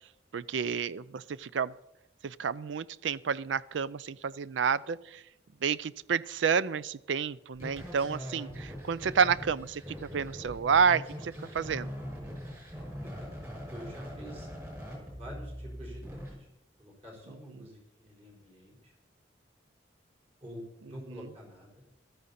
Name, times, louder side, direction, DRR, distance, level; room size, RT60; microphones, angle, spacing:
voice 1, 0.3-1.7 2.2-5.2 5.6-11.9 17.6-17.7 21.1-21.3, right 6 dB, 80° right, 18 dB, 0.4 m, -30 dB
sound 1, 7.6-16.3, equal, 20° right, 6.1 m, -42 dB
voice 2, 13.7-14.5 15.2-16.2 16.8-18.9 20.4-21.7, equal, 35° right, -2 dB, 4.7 m, -47 dB
14.5 x 13.0 x 4.2 m, 0.84 s
head